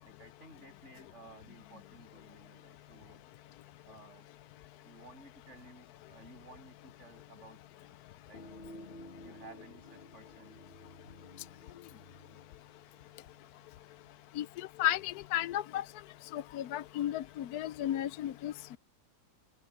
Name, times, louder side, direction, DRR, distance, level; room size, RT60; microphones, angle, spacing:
voice 1, 0.0-3.2 3.9-4.3 4.8-7.6 8.2-8.4 9.2-10.6 11.0-11.1, right 2 dB, 45° right, 7.8 m, -55 dB
sound 1, 8.3-13.7, left 1 dB, 40° left, 1.3 m, -53 dB
voice 2, 14.4-15.8 16.3-18.8, left 12 dB, 75° left, 1.0 m, -34 dB
open air
omnidirectional pair, 1.7 m